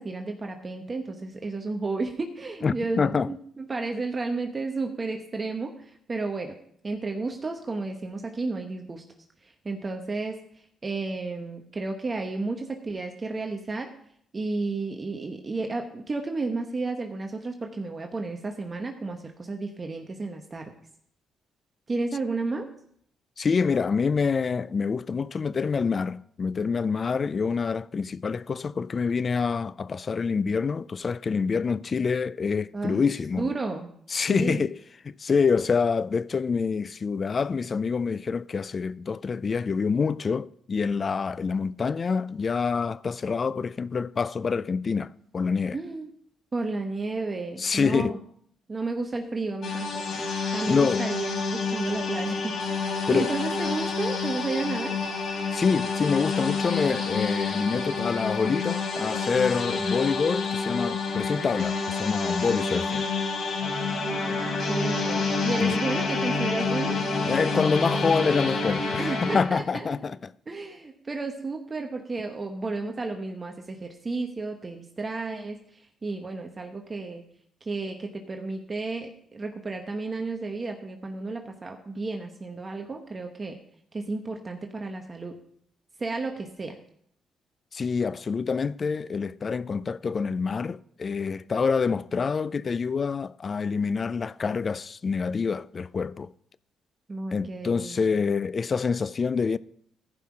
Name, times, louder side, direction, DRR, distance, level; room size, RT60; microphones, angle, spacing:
voice 1, 0.0-6.6 6.8-9.0 9.4-13.9 14.3-20.7 21.9-22.7 32.7-33.0 33.4-33.9 34.3-34.6 45.7-46.1 46.5-48.2 48.7-55.0 63.9-67.0 69.0-70.1 70.5-77.2 77.6-83.6 83.9-85.4 86.0-86.8 97.1-98.2, right 3 dB, 30° right, 1.0 m, -32 dB
voice 2, 2.6-3.3 23.4-33.5 34.1-34.8 35.0-45.8 47.6-48.2 50.7-51.0 53.1-53.3 55.5-63.1 65.6-65.8 67.2-70.3 87.7-96.3 97.3-99.6, left 5 dB, 40° left, 0.3 m, -26 dB
sound 1, 49.6-69.4, left 4 dB, 65° left, 3.5 m, -28 dB
14.5 x 5.6 x 4.9 m
cardioid pair, 90°, 0 cm